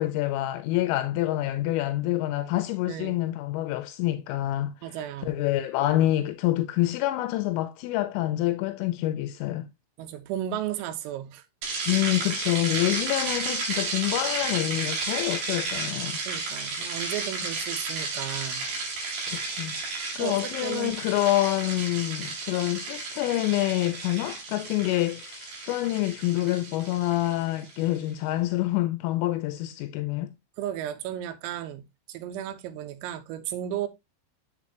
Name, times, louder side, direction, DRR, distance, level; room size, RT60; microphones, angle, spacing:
voice 1, 0.0-4.7 5.2-9.7 11.9-16.2 19.3-19.8 20.2-30.3, left 15 dB, 85° left, 3.1 m, -27 dB
voice 2, 2.9-3.2 4.8-5.4 10.0-11.5 16.3-18.7 20.2-21.0 30.6-33.9, right 11 dB, 85° right, 3.6 m, -34 dB
sound 1, 11.6-27.9, right 3 dB, 50° right, 4.0 m, -33 dB
7.6 x 7.3 x 2.8 m
omnidirectional pair, 5.9 m